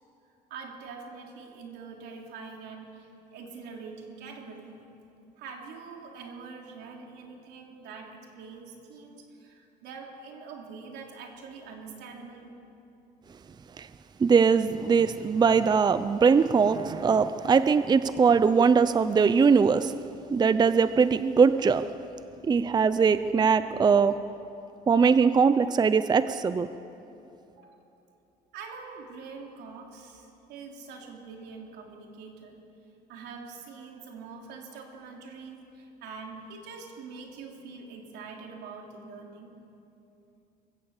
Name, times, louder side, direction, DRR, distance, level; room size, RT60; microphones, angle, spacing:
voice 1, 0.5-4.8 5.4-12.5 27.5-27.8 28.5-32.6 33.1-39.6, right 4 dB, 85° right, 1 dB, 3.3 m, -44 dB
voice 2, 14.2-19.9 20.3-21.9 22.4-24.2 24.9-26.7, right 5 dB, 25° right, 13 dB, 0.5 m, -21 dB
23.5 x 15.5 x 7.3 m, 2.8 s
cardioid pair, 110°, 17 cm